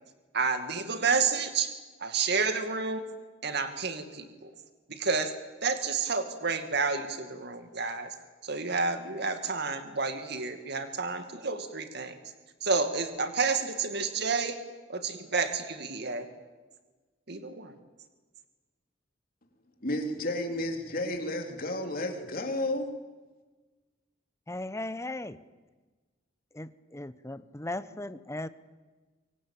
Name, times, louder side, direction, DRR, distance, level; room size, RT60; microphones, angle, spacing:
voice 1, 0.3-1.7 2.0-3.0 3.4-4.5 4.9-5.3 5.6-8.1 8.4-12.2 12.6-14.6 14.9-16.3 17.3-17.7, right 4 dB, 60° right, 8 dB, 2.3 m, -30 dB
voice 2, 19.8-22.9, left 1 dB, 50° left, 4 dB, 3.5 m, -32 dB
voice 3, 24.5-25.4 26.5-28.5, left 2 dB, 15° left, 13 dB, 0.9 m, -37 dB
25.0 x 23.0 x 8.9 m, 1.3 s
head